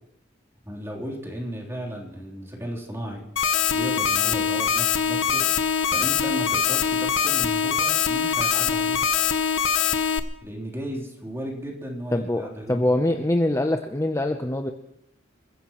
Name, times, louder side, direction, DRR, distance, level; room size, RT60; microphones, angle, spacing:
voice 1, 0.7-3.2 3.7-5.5 5.9-9.0 10.4-12.8, equal, 15° right, -1 dB, 3.5 m, -35 dB
sound 1, 3.4-10.2, left 7 dB, 70° left, 0.9 m, -23 dB
voice 2, 12.1-14.7, left 1 dB, 15° left, 5 dB, 0.7 m, -24 dB
27.5 x 15.5 x 3.1 m, 0.77 s
head